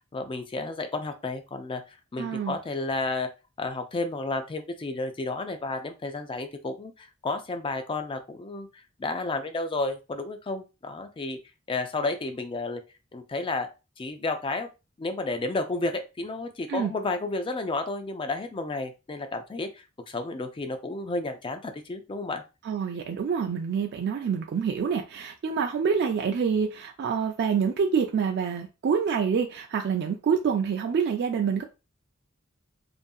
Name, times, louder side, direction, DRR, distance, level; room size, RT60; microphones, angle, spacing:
voice 1, 0.1-1.8 2.1-3.3 3.6-11.4 11.7-12.8 13.1-13.7 14.0-14.7 15.0-22.4, left 3 dB, 25° left, 0.4 m, -32 dB
voice 2, 2.2-2.6 16.7-16.9 22.6-31.6, right 6 dB, 55° right, 0.3 m, -27 dB
2.6 x 2.5 x 2.3 m
head